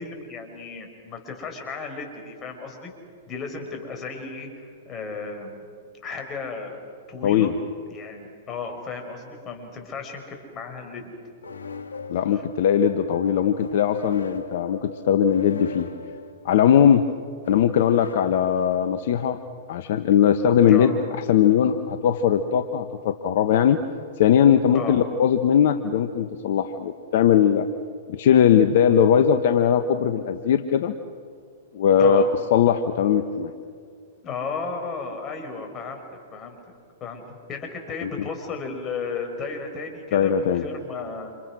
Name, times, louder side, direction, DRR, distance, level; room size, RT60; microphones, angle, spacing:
voice 1, 0.0-2.9 3.3-5.6 6.0-6.8 7.1-7.5 7.9-11.1 12.3-12.4 20.7-21.0 24.7-25.0 32.0-32.3 34.2-36.0 36.3-36.6 37.0-37.2 37.5-41.3, left 4 dB, 30° left, 4 dB, 6.2 m, -34 dB
voice 2, 7.2-7.5 12.1-15.9 16.4-17.1 17.5-19.4 19.7-23.8 24.2-27.7 28.1-30.9 31.7-32.2 32.5-33.5 38.0-38.1 40.1-40.7, left 8 dB, 60° left, 9 dB, 1.3 m, -20 dB
sound 1, 11.4-19.1, left 4 dB, 90° left, 1.9 m, -40 dB
30.0 x 28.5 x 6.3 m, 2.2 s
hypercardioid pair, 115°, 0 cm